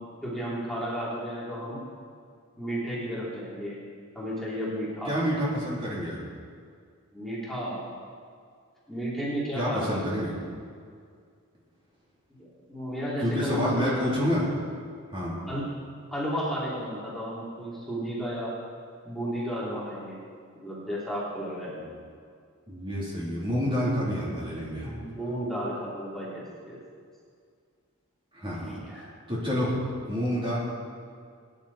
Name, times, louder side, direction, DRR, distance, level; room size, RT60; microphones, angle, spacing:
voice 1, 0.2-1.8 2.6-3.8 4.1-5.2 7.1-7.9 8.9-10.1 12.4-14.0 15.4-15.7 16.1-18.5 19.1-20.2 20.6-21.7 24.7-26.8 28.7-29.1, equal, ahead, -8 dB, 3.7 m, -33 dB
voice 2, 5.1-6.2 9.5-10.3 13.2-14.4 15.1-15.4 21.7-21.9 22.7-24.9 28.3-28.8 29.3-29.7 30.1-30.6, equal, 25° right, -7 dB, 3.7 m, -28 dB
22.5 x 10.5 x 4.4 m, 2.2 s
head